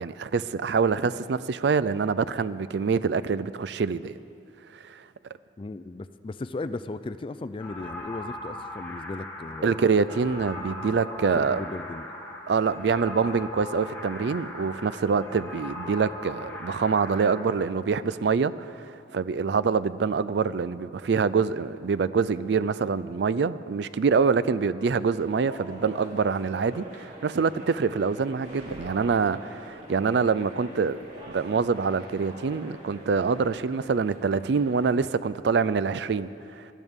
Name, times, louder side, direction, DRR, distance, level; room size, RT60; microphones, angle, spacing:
voice 1, 0.0-4.1 4.9-5.0 9.6-11.6 12.5-31.0 31.3-36.7, right 5 dB, 70° right, 0.4 m, -25 dB
voice 2, 5.6-9.8 11.4-12.1, left 2 dB, 30° left, 0.3 m, -36 dB
sound 1, 7.6-17.4, left 1 dB, 15° left, 1.8 m, -39 dB
sound 2, 24.9-35.1, right 1 dB, 40° right, 2.8 m, -45 dB
21.5 x 12.5 x 3.6 m
head